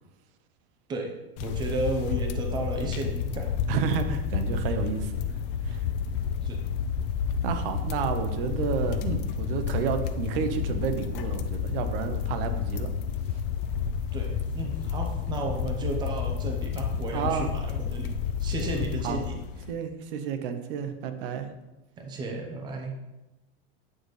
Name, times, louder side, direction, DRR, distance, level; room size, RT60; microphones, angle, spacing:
voice 1, 0.9-3.5 4.1-4.2 6.4-6.6 14.1-18.1 18.4-19.4 22.0-22.9, right 2 dB, 15° right, 2 dB, 0.7 m, -33 dB
sound 1, 1.4-19.7, left 7 dB, 55° left, 0.5 m, -30 dB
voice 2, 3.7-5.3 5.6-5.9 7.4-12.9 17.1-17.5 18.7-19.2 19.7-21.5, right 7 dB, 60° right, 7 dB, 0.8 m, -31 dB
8.6 x 4.0 x 3.2 m, 1.0 s
supercardioid pair, 160°, 31 cm